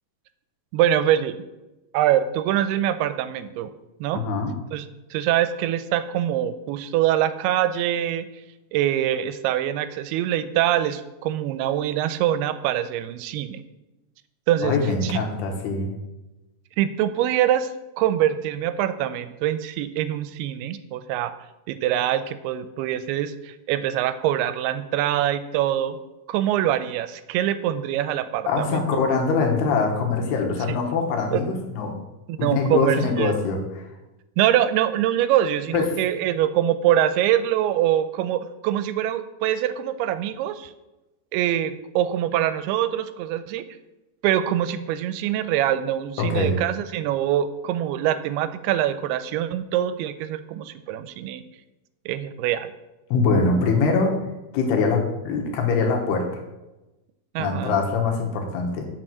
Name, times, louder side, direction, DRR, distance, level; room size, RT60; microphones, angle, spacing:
voice 1, 0.7-1.4 1.9-3.7 4.0-4.2 4.7-4.9 5.1-8.3 8.7-13.6 14.5-14.8 15.0-15.2 16.8-17.7 18.0-21.3 21.7-26.0 26.3-28.8 30.7-30.8 31.3-31.4 32.3-33.3 34.4-40.7 41.3-43.6 44.2-51.4 52.1-52.7 57.4-57.8, right 11 dB, 90° right, 13 dB, 2.5 m, -24 dB
voice 2, 4.1-4.5 14.6-15.9 28.5-31.9 32.4-33.6 35.7-35.9 46.2-46.6 53.1-54.1 54.5-56.2 57.4-58.9, left 4 dB, 90° left, 2 dB, 3.3 m, -23 dB
7.8 x 6.2 x 6.2 m, 1.0 s
omnidirectional pair, 4.5 m